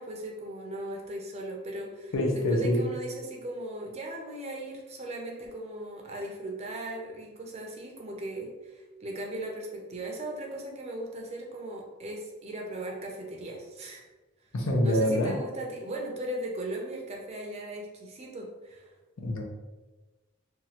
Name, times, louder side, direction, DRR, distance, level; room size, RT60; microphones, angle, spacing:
voice 1, 0.0-14.0 14.8-18.9, right 1 dB, 30° right, 0 dB, 0.4 m, -38 dB
voice 2, 2.1-2.8 14.5-15.4 19.2-19.4, equal, 65° left, 0 dB, 0.5 m, -25 dB
2.9 x 2.3 x 2.8 m, 1.2 s
head